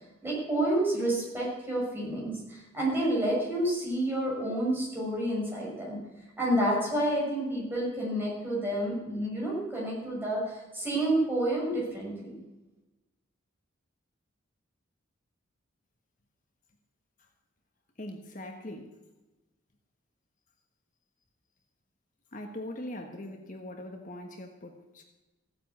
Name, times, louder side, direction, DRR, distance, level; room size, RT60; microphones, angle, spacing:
voice 1, 0.2-6.0 6.4-12.4, right 1 dB, 10° right, -5 dB, 6.3 m, -29 dB
voice 2, 18.0-19.0 22.3-25.0, left 1 dB, 40° left, 4 dB, 1.4 m, -41 dB
15.5 x 9.3 x 8.4 m, 1.1 s
head